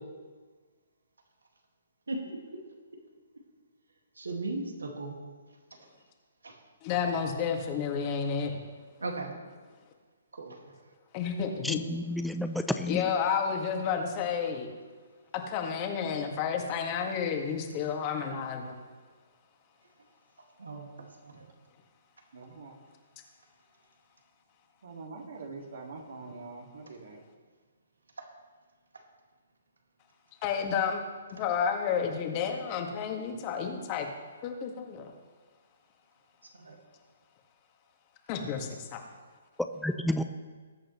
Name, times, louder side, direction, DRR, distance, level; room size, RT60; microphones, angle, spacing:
voice 1, 4.2-5.2 6.4-6.5 9.0-9.4 10.4-10.5 20.6-20.9 21.3-21.5 36.6-36.8, right 2 dB, 85° right, 2 dB, 2.1 m, -36 dB
voice 2, 6.8-8.6 11.1-11.8 12.9-14.7 15.3-18.7 30.4-31.0 31.3-34.1 34.4-35.1 38.3-39.0, left 7 dB, 35° left, 2 dB, 2.0 m, -31 dB
voice 3, 11.6-13.1 39.7-40.2, left 1 dB, ahead, 7 dB, 0.6 m, -31 dB
voice 4, 22.3-22.7 24.8-27.2, right 3 dB, 70° right, -1 dB, 2.2 m, -44 dB
20.0 x 8.8 x 3.2 m, 1.5 s
hypercardioid pair, 135°, 0 cm